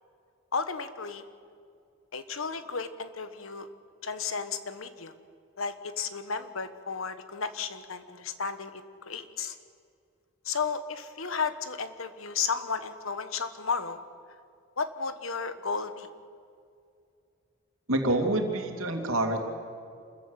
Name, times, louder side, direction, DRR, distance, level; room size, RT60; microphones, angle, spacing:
voice 1, 0.5-1.2 2.1-3.7 4.0-5.1 5.6-9.6 10.4-14.0 14.8-16.1, left 5 dB, 80° left, 11 dB, 1.3 m, -33 dB
voice 2, 17.9-19.4, right 1 dB, 85° right, 3 dB, 2.8 m, -27 dB
27.0 x 14.5 x 8.2 m, 2.5 s
head